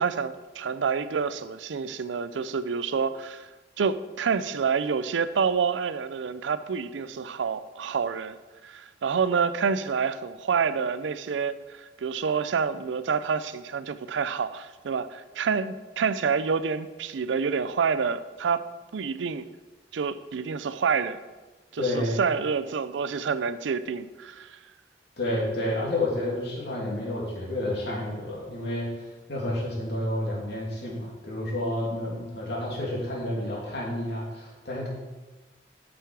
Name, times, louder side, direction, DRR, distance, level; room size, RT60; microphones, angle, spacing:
voice 1, 0.0-3.5 3.8-8.4 8.6-18.6 18.9-19.5 19.9-21.2 21.7-24.6, right 6 dB, 80° right, 13 dB, 0.4 m, -28 dB
voice 2, 21.8-22.2 25.2-28.9 29.3-34.9, left 1 dB, 65° left, -4 dB, 2.5 m, -30 dB
8.1 x 6.2 x 4.6 m, 1.2 s
head